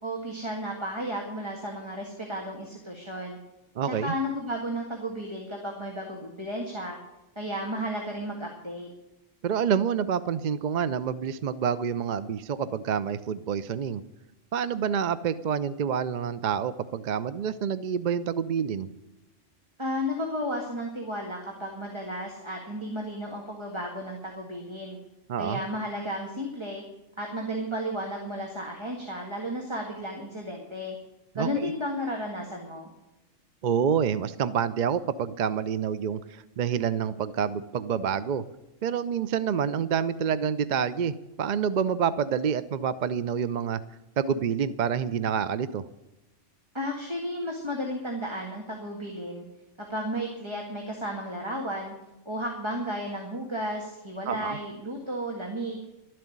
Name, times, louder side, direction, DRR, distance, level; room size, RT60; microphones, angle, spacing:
voice 1, 0.0-3.4 3.8-7.0 7.4-8.9 19.8-25.0 25.4-26.8 27.2-31.0 31.4-32.9 46.7-49.4 49.8-51.9 52.3-55.9, equal, 20° right, 0 dB, 1.9 m, -33 dB
voice 2, 3.8-4.1 9.4-14.0 14.5-18.9 25.3-25.6 31.4-31.7 33.6-38.4 38.8-43.8 44.2-45.8 54.3-54.6, right 7 dB, 55° right, 14 dB, 0.5 m, -28 dB
12.0 x 7.7 x 9.9 m, 0.99 s
omnidirectional pair, 1.3 m